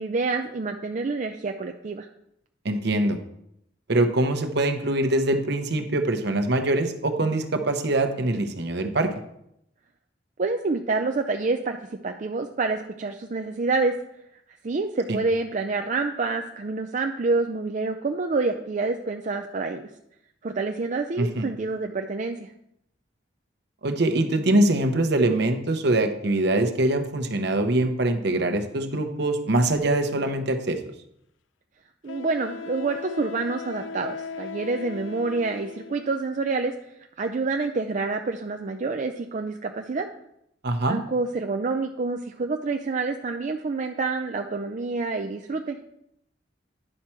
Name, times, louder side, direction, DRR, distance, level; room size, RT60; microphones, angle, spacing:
voice 1, 0.0-2.1 10.4-11.8 12.0-14.0 14.6-19.8 20.4-22.5 32.0-36.7 37.2-40.1 40.9-45.8, right 3 dB, 40° right, 4 dB, 0.4 m, -27 dB
voice 2, 2.6-3.2 3.9-9.1 15.1-15.2 21.2-21.5 23.8-30.8 40.6-41.0, right 1 dB, 65° right, 7 dB, 0.9 m, -23 dB
Wind instrument woodwind instrument, 30.8-30.9 32.1-36.1, left 6 dB, 90° left, 0.4 m, -38 dB
10.0 x 6.0 x 4.4 m, 0.77 s
head